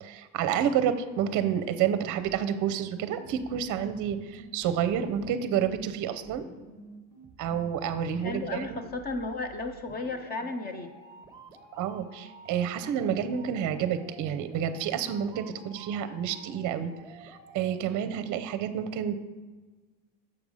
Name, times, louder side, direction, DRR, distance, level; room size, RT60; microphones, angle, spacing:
voice 1, 0.0-6.5 7.4-8.8 11.8-16.9 17.2-19.2, right 9 dB, 40° right, 11 dB, 0.7 m, -29 dB
sound 1, 2.2-18.2, right 2 dB, 5° right, 0.8 m, -51 dB
voice 2, 8.2-11.0, left 3 dB, 20° left, 8 dB, 0.4 m, -34 dB
7.0 x 4.7 x 5.4 m, 1.3 s
supercardioid pair, 115°, 50 cm